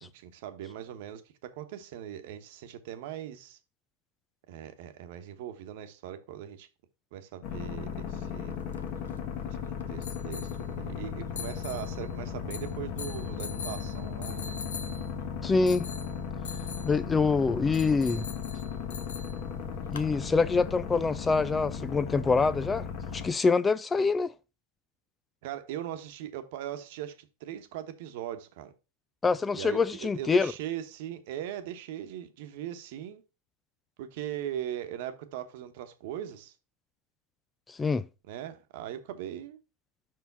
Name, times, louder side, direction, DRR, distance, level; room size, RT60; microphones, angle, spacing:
voice 1, 0.0-3.6 4.5-6.7 7.1-8.5 9.5-14.5 25.4-28.7 29.5-33.2 34.0-36.5 38.3-39.6, right 11 dB, 60° right, 1.1 m, -40 dB
sound 1, 7.4-23.3, left 7 dB, 50° left, 1.5 m, -36 dB
sound 2, 8.5-20.1, left 6 dB, 90° left, 0.9 m, -45 dB
voice 2, 15.4-15.9 16.8-18.3 19.9-22.9 23.1-24.3 29.2-30.5 37.7-38.0, left 4 dB, 15° left, 0.3 m, -25 dB
5.7 x 4.8 x 5.4 m
hypercardioid pair, 120°, 0 cm